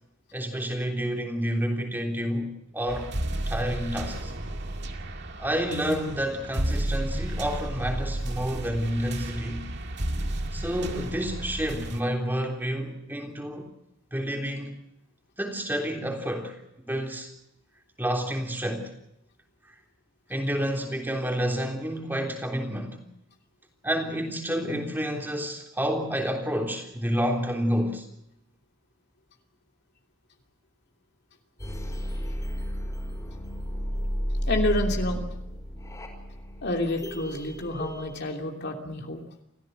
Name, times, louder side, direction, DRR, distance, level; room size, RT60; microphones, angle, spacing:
voice 1, 0.3-3.1 3.5-4.3 5.4-9.7 10.5-13.7 14.1-14.7 15.4-16.6 16.9-17.3 18.0-18.9 19.6-19.8 20.3-23.0 23.8-28.1, equal, 10° right, 3.5 m, -29 dB
sound 1, 2.9-12.0, right 1 dB, 55° right, 2.3 m, -32 dB
sound 2, 31.6-38.2, equal, 15° left, 4.8 m, -32 dB
voice 2, 34.5-35.2 36.6-39.2, left 1 dB, 55° left, 3.0 m, -29 dB
29.0 x 15.0 x 7.9 m
head